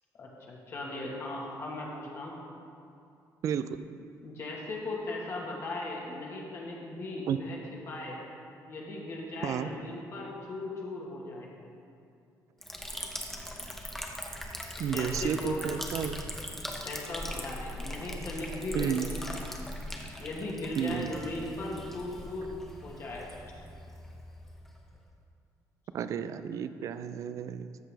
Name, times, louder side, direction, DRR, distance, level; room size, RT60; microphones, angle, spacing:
voice 1, 0.1-2.3 4.2-7.6 7.9-8.2 8.7-11.5 14.7-15.6 16.8-19.0 19.2-19.3 20.2-22.5 22.8-23.3, left 2 dB, 45° left, -3 dB, 1.5 m, -38 dB
voice 2, 3.4-3.8 7.3-7.4 9.4-9.7 14.8-16.2 18.7-19.1 20.8-21.1 25.9-27.8, right 8 dB, 55° right, 12 dB, 0.4 m, -32 dB
Liquid, 12.6-25.1, left 1 dB, 5° left, 0.8 m, -40 dB
13.5 x 6.8 x 3.4 m, 2.5 s
cardioid pair, 150°, 7 cm